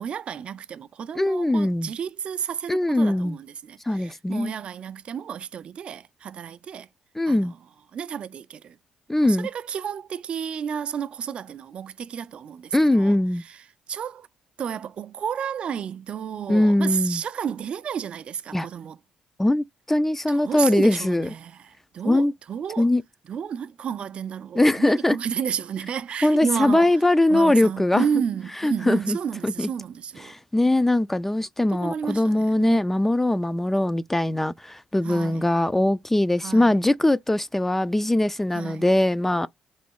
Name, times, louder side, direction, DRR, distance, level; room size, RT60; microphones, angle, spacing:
voice 1, 0.0-6.9 7.3-7.6 7.9-8.8 9.2-13.6 13.9-14.3 14.6-19.0 20.3-22.9 23.3-27.0 27.3-30.3 31.7-32.8 35.0-35.4 36.4-36.8 38.5-38.9, right 8 dB, 55° right, 0.4 m, -32 dB
voice 2, 1.2-1.9 2.7-3.4 3.9-4.5 7.2-7.5 9.1-9.5 12.7-13.4 16.5-17.2 18.5-18.7 19.4-21.3 22.0-22.3 22.8-23.0 24.6-25.2 26.2-28.1 28.6-29.2 29.4-29.7 30.2-39.5, left 1 dB, 15° left, 0.3 m, -21 dB
3.5 x 3.1 x 4.6 m
hypercardioid pair, 50°, 2 cm